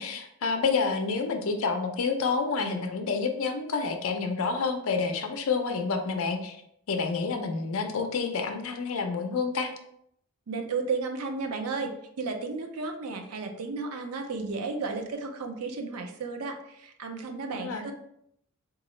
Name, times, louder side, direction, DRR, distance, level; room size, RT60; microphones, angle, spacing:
voice 1, 0.0-6.6 6.9-9.7 17.5-17.9, left 4 dB, 65° left, 5 dB, 0.5 m, -29 dB
voice 2, 10.5-17.9, right 4 dB, 90° right, 5 dB, 0.5 m, -33 dB
3.7 x 2.3 x 3.1 m, 0.73 s
head